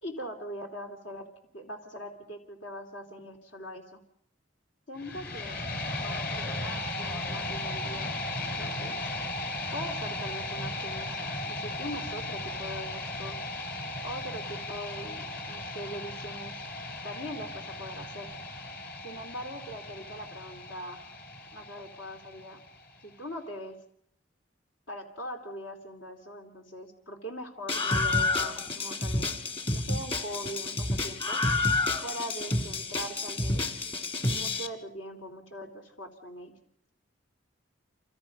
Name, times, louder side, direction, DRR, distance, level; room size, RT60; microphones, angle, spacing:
voice 1, 0.0-1.3 1.5-4.0 4.9-5.6 6.0-9.0 9.7-13.4 14.0-16.6 17.0-18.3 19.0-21.0 21.5-22.6 23.0-23.7 24.9-29.3 29.7-31.4 32.0-33.8 34.3-36.5, equal, 80° left, 3 dB, 3.2 m, -41 dB
sound 1, 5.0-23.0, left 2 dB, 55° left, 3.5 m, -36 dB
Screaming, 27.7-34.7, left 2 dB, 30° left, 1.9 m, -29 dB
28.5 x 26.5 x 5.4 m, 0.68 s
head